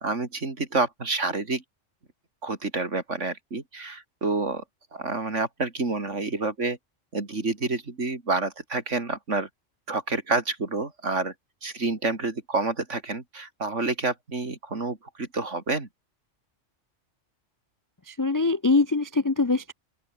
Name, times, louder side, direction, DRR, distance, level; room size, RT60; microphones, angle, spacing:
voice 1, 0.0-1.6 2.4-4.6 4.9-6.8 7.1-9.5 9.9-11.3 11.6-15.9, right 3 dB, 70° right, 3.6 m, -28 dB
voice 2, 18.1-19.7, left 3 dB, 30° left, 0.4 m, -23 dB
open air
omnidirectional pair, 1.3 m